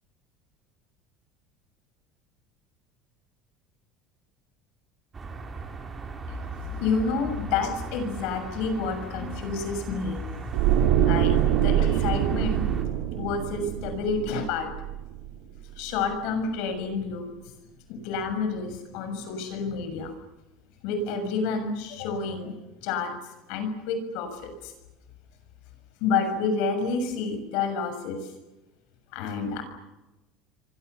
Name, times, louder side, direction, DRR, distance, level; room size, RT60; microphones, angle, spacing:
sound 1, 5.1-12.8, right 3 dB, 20° right, 3.3 m, -38 dB
voice 1, 6.3-12.9 13.2-14.7 15.8-17.3 17.9-20.1 20.8-22.5 22.8-23.1 23.5-24.7 26.0-28.3 29.1-29.6, left 4 dB, 65° left, 7 dB, 6.8 m, -29 dB
sound 2, 10.5-15.6 15.9-16.1, right 10 dB, 85° right, 2.8 m, -25 dB
29.5 x 24.0 x 7.0 m, 1.0 s
cardioid pair, 150°, 0 cm